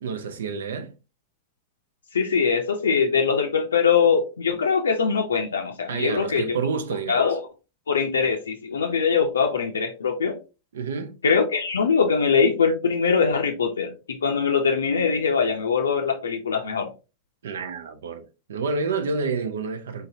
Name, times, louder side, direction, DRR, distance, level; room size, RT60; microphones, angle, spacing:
voice 1, 0.0-0.9 5.9-7.2 10.7-11.2 17.4-20.1, right 4 dB, 65° right, 0.6 m, -29 dB
voice 2, 2.1-6.6 7.1-7.4 7.9-10.4 11.2-16.9, left 5 dB, 70° left, 0.5 m, -22 dB
3.9 x 3.9 x 2.6 m
figure-of-eight pair, 90°, 0 cm